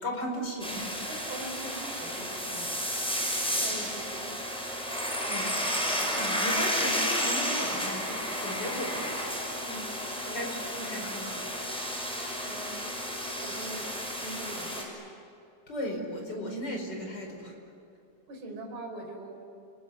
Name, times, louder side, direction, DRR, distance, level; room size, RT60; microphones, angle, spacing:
voice 1, 0.0-1.0 5.3-5.7 6.0-9.2 10.3-11.5 15.7-17.6, equal, 25° left, 2 dB, 5.1 m, -36 dB
sound 1, 0.6-14.8, equal, ahead, 5.4 m, -32 dB
voice 2, 1.1-2.7 3.6-4.3 9.6-10.5 12.4-13.0 13.4-13.9 14.2-15.0 18.3-19.4, right 2 dB, 75° right, 1 dB, 7.0 m, -42 dB
29.5 x 21.5 x 9.6 m, 2.6 s
omnidirectional pair, 4.5 m